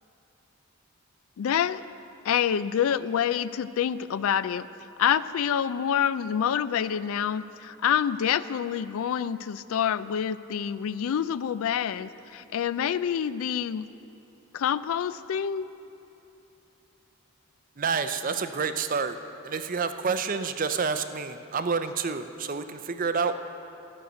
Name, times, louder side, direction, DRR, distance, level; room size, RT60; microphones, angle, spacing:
voice 1, 1.4-1.8 2.2-4.7 5.0-13.9 14.5-15.7, left 8 dB, 70° left, 16 dB, 0.3 m, -27 dB
voice 2, 17.8-19.2 19.4-23.3, right 5 dB, 40° right, 10 dB, 0.4 m, -28 dB
13.0 x 6.5 x 8.0 m, 2.8 s
head